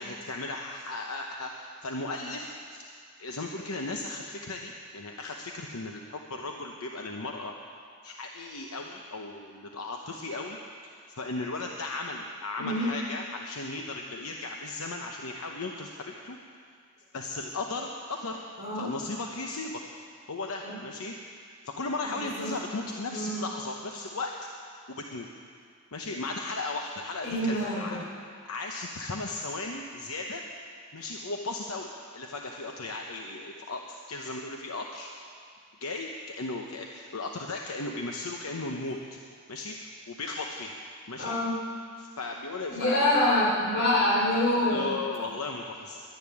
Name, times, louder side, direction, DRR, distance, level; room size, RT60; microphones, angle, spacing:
voice 1, 0.0-2.8 3.2-7.5 8.0-10.6 10.8-16.4 17.1-18.4 18.7-19.8 20.3-21.1 21.6-24.3 24.9-25.3 25.9-28.0 28.4-30.4 30.9-35.1 35.8-39.2 39.5-39.8 40.1-40.8 41.1-41.4 42.0-43.2 44.3-46.0, left 3 dB, 85° left, 1 dB, 0.9 m, -36 dB
voice 2, 22.1-22.6 23.0-23.5 27.2-28.0 41.2-41.5 42.7-45.0, left 1 dB, 60° left, -5 dB, 4.7 m, -26 dB
11.5 x 10.5 x 9.8 m, 2.2 s
head